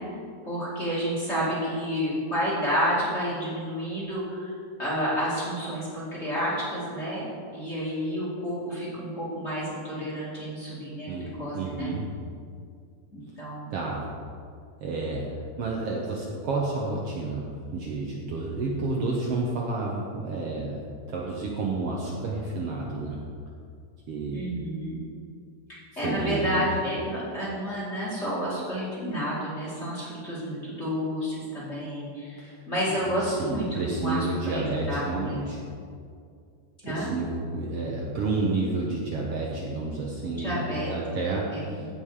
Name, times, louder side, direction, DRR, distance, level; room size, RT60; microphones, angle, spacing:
voice 1, 0.4-7.2 7.5-11.9 13.1-13.7 24.3-25.0 26.0-35.5 36.8-37.1 40.4-40.9 41.2-41.9, equal, 25° left, -7 dB, 2.4 m, -30 dB
voice 2, 11.6-12.1 13.7-14.1 14.8-20.8 21.1-23.2 24.1-24.5 26.0-26.7 32.4-32.5 33.0-35.6 36.8-41.9, right 3 dB, 65° right, -2 dB, 1.7 m, -30 dB
15.5 x 5.4 x 4.9 m, 2.3 s
omnidirectional pair, 3.4 m